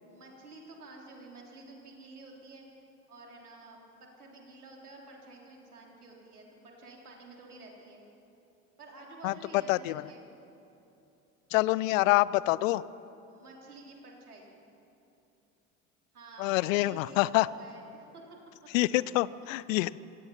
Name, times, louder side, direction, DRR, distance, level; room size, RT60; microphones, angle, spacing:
voice 1, 0.0-8.0 8.8-10.2 13.3-14.6 16.1-18.2, right 2 dB, 85° right, -1 dB, 3.6 m, -51 dB
voice 2, 9.7-10.0 11.5-12.8 16.4-17.5 18.7-20.0, left 18 dB, 60° left, 20 dB, 0.7 m, -26 dB
27.0 x 17.0 x 5.7 m, 2.9 s
figure-of-eight pair, 65°, 44 cm